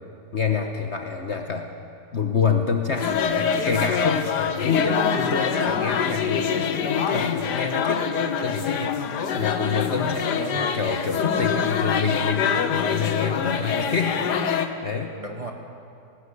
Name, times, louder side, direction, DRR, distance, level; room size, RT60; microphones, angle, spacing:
voice 1, 0.3-1.7 2.1-8.9 9.4-15.2, left 5 dB, 45° left, 4 dB, 1.3 m, -27 dB
sound 1, 3.0-14.7, left 7 dB, 85° left, 1.6 m, -25 dB
voice 2, 10.4-10.8 11.5-12.1 15.2-15.5, right 2 dB, 20° right, 2 dB, 1.9 m, -35 dB
19.0 x 18.0 x 8.2 m, 2.4 s
omnidirectional pair, 1.8 m